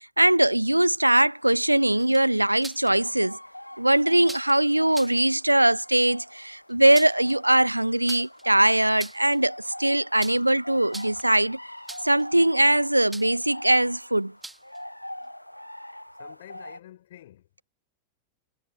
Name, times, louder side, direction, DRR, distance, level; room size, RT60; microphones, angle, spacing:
voice 1, 0.2-3.4 3.8-11.6 12.0-14.3, right 1 dB, 85° right, 0.3 m, -21 dB
sound 1, 0.6-16.8, left 1 dB, 90° left, 0.7 m, -44 dB
sound 2, 2.0-2.9 4.2-4.5 4.9-5.2 6.7-7.3 8.1-8.4 8.9-9.4 10.2-10.5 10.8-11.3 11.9-12.2 13.1-13.4 14.4-14.8, right 2 dB, 5° right, 2.1 m, -41 dB
voice 2, 16.2-17.6, left 13 dB, 60° left, 4.2 m, -49 dB
figure-of-eight pair, 90°, 0 cm